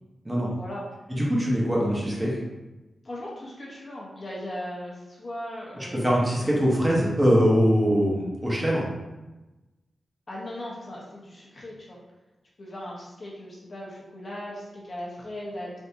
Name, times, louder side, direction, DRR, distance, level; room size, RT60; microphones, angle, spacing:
voice 1, 1.1-2.4 5.8-8.9, equal, 15° right, -4 dB, 0.7 m, -22 dB
voice 2, 3.0-6.5 10.3-12.0 12.6-15.7, left 1 dB, 40° left, -4 dB, 0.7 m, -38 dB
3.4 x 2.6 x 2.7 m, 1.1 s
wide cardioid pair, 135°, 0 cm